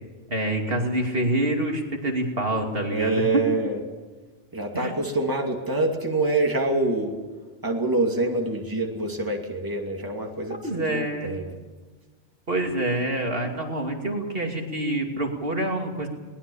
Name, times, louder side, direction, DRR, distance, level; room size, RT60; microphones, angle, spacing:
voice 1, 0.3-3.5 4.7-4.9 10.6-11.3 12.5-16.1, right 1 dB, 50° right, 2 dB, 2.9 m, -26 dB
voice 2, 2.9-3.8 4.5-7.2 7.6-11.6, right 2 dB, 15° right, 1 dB, 2.5 m, -26 dB
22.0 x 19.5 x 7.1 m, 1.3 s
omnidirectional pair, 1.2 m